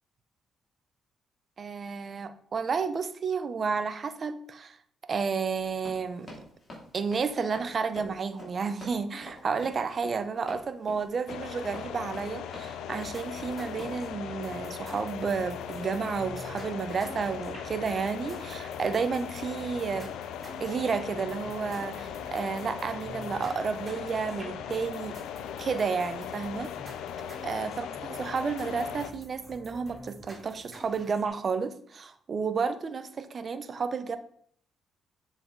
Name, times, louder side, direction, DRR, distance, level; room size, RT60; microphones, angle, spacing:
voice 1, 1.6-4.8 5.1-6.3 6.9-20.1 20.6-25.2 25.6-26.7 27.4-34.2, right 5 dB, 45° right, 10 dB, 0.6 m, -31 dB
Run, 5.5-14.0, left 1 dB, 35° left, 2.9 m, -46 dB
sound 1, 11.3-29.1, left 9 dB, 85° left, 0.4 m, -39 dB
sound 2, 13.0-31.3, right 1 dB, 25° right, 2.3 m, -49 dB
7.3 x 4.1 x 4.6 m, 0.62 s
cardioid pair, 90°, 0 cm